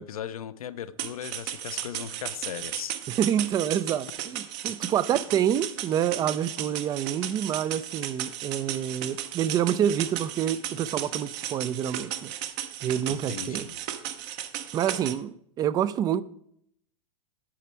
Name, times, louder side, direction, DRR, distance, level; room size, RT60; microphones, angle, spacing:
voice 1, 0.0-3.0 13.1-13.8, left 9 dB, 80° left, 0.6 m, -38 dB
sound 1, 1.0-15.1, right 11 dB, 50° right, 0.8 m, -35 dB
voice 2, 3.2-12.3 12.8-13.7 14.7-16.2, right 10 dB, 20° right, 0.3 m, -27 dB
8.5 x 5.8 x 4.4 m
hypercardioid pair, 115°, 18 cm